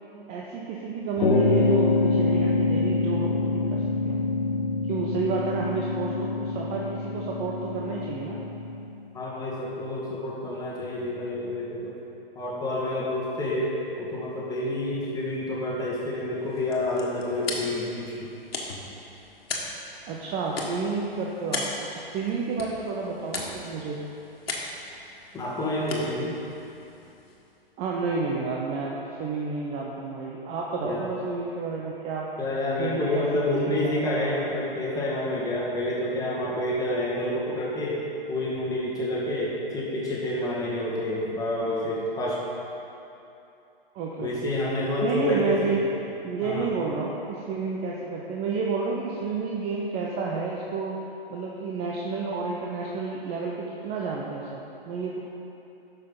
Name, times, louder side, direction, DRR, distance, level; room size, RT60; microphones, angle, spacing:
voice 1, 0.3-4.2 4.8-8.4 20.1-21.6 21.9-24.0 27.8-32.3 32.8-34.5 43.9-44.3 45.0-45.8 46.2-50.9 51.3-55.2, right 4 dB, 20° right, -3 dB, 0.7 m, -30 dB
sound 1, 1.2-8.9, left 3 dB, 60° left, 1.0 m, -25 dB
voice 2, 9.1-11.9 12.3-13.7 14.0-18.1 25.3-26.4 30.8-31.0 32.4-38.0 38.3-42.4 44.2-45.8 46.4-46.7, left 1 dB, 10° left, -6 dB, 1.8 m, -28 dB
sound 2, 16.4-27.6, left 2 dB, 75° left, 1.7 m, -38 dB
11.5 x 6.6 x 3.9 m, 2.8 s
figure-of-eight pair, 125°, 30 cm